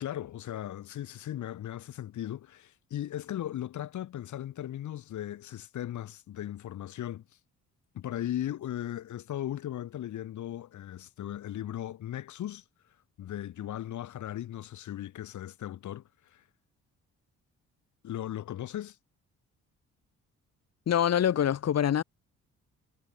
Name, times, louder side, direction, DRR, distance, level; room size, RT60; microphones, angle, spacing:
voice 1, 0.0-7.3 7.9-12.6 13.2-16.4 18.0-19.0, left 12 dB, 70° left, 3.5 m, -37 dB
voice 2, 20.9-22.0, left 9 dB, 55° left, 2.0 m, -25 dB
cardioid pair, 90°, 30 cm